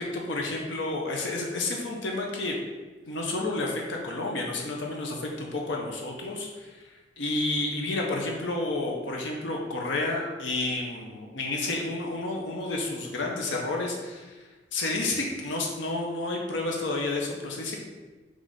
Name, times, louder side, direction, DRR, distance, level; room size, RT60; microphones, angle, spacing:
voice 1, 0.0-2.6 3.1-17.8, left 2 dB, 80° left, 0 dB, 0.7 m, -30 dB
4.6 x 2.4 x 4.1 m, 1.3 s
head